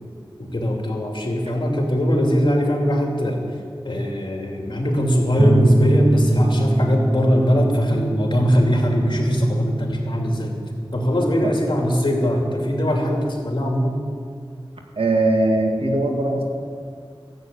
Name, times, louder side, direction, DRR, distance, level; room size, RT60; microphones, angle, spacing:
voice 1, 0.4-3.4 3.8-10.5 10.9-14.0, equal, 55° left, 0 dB, 2.7 m, -21 dB
sound 1, 5.4-13.0, right 2 dB, 20° right, 0.4 m, -23 dB
voice 2, 15.0-16.4, right 2 dB, 90° right, 1 dB, 2.0 m, -20 dB
14.5 x 7.9 x 9.1 m, 2.1 s
wide cardioid pair, 65°, 9 cm